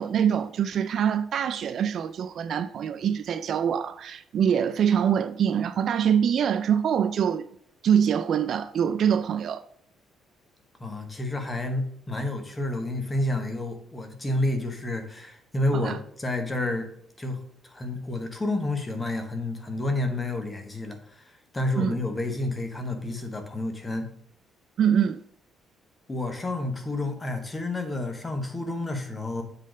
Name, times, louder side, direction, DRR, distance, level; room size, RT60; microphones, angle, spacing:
voice 1, 0.0-7.5 7.8-9.6 15.7-16.0 21.8-22.0 24.8-25.2, right 8 dB, 45° right, 0.3 m, -24 dB
voice 2, 10.8-16.9 17.2-24.1 26.1-29.4, left 2 dB, 15° left, 1.0 m, -30 dB
7.4 x 3.9 x 5.0 m
cardioid pair, 170°, 0 cm